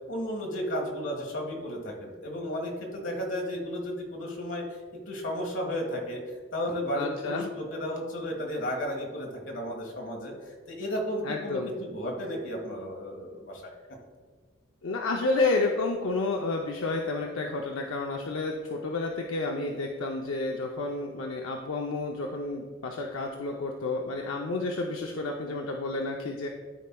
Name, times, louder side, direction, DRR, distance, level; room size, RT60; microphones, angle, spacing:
voice 1, 0.1-4.8 5.1-6.2 6.5-13.7, equal, 65° left, 0 dB, 1.6 m, -33 dB
voice 2, 6.9-7.5 11.2-11.7 14.8-26.5, left 3 dB, 85° left, 1 dB, 0.6 m, -30 dB
13.0 x 4.3 x 2.3 m, 1.5 s
head